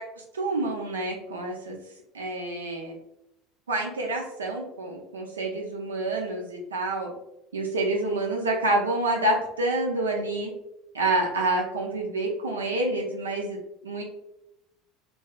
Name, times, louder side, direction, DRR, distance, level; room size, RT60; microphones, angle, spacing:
voice 1, 0.0-1.8 2.1-2.9 3.7-7.1 7.5-10.5 10.9-13.6 13.8-14.0, right 2 dB, 80° right, 0 dB, 0.4 m, -28 dB
2.6 x 2.2 x 2.3 m, 0.84 s
figure-of-eight pair, 70°, 0 cm